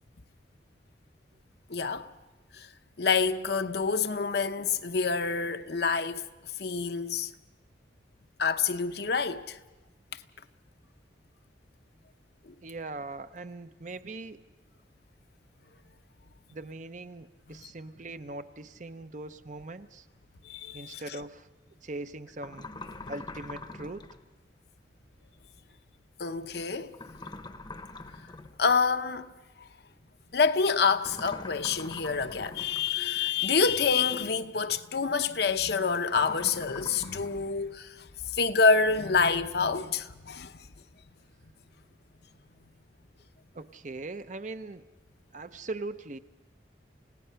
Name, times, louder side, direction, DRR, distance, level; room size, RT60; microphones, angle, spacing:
voice 1, 1.7-2.1 2.5-2.7 3.0-6.2 6.6-7.3 8.4-9.6 12.5-12.6 17.5-17.6 20.4-21.0 26.2-26.9 28.6-29.3 30.3-40.6, left 5 dB, 60° left, 0.8 m, -27 dB
voice 2, 12.6-14.4 16.5-20.1 20.7-21.5 21.8-22.7 23.1-24.0 43.5-44.8 45.3-46.2, right 2 dB, 40° right, 0.6 m, -40 dB
sound 1, 22.4-24.2 26.9-28.6 31.0-33.0 36.1-37.3, left 2 dB, 25° left, 0.8 m, -43 dB
29.0 x 17.0 x 5.7 m
head